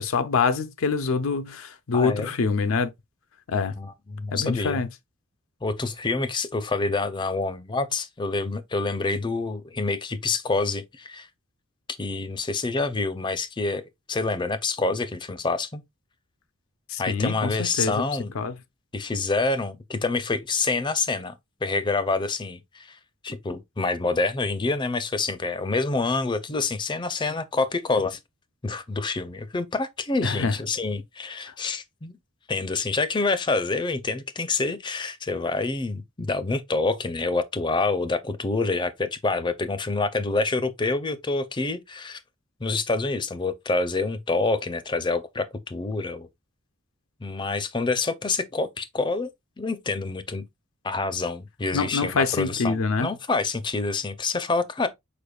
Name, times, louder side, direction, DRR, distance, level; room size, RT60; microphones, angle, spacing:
voice 1, 0.0-2.9 3.5-3.7 4.3-4.9 16.9-18.0 18.3-18.6 30.2-30.6 51.7-53.2, left 4 dB, 75° left, 0.5 m, -25 dB
voice 2, 1.9-2.3 3.8-4.8 5.6-11.3 12.0-13.8 14.1-15.8 17.0-18.3 18.9-21.3 21.6-23.0 23.2-28.2 28.6-32.2 32.5-42.2 42.6-46.3 47.2-49.3 49.6-50.4 50.8-54.9, left 3 dB, 20° left, 0.5 m, -27 dB
5.1 x 4.4 x 2.3 m
head